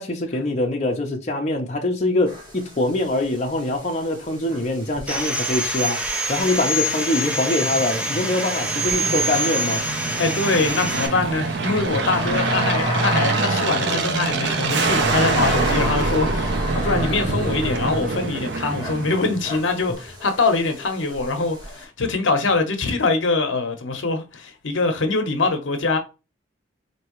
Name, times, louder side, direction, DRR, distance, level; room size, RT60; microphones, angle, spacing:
voice 1, 0.0-6.0 6.3-9.8, left 1 dB, 35° left, 0.8 m, -23 dB
sound 1, 2.3-21.8, equal, 20° right, 1.3 m, -33 dB
Sawing, 5.1-11.1, right 1 dB, 5° right, 0.5 m, -25 dB
Aircraft, 6.9-19.7, right 3 dB, 60° right, 0.6 m, -26 dB
voice 2, 10.2-26.0, left 3 dB, 75° left, 0.9 m, -23 dB
4.5 x 3.0 x 3.0 m
head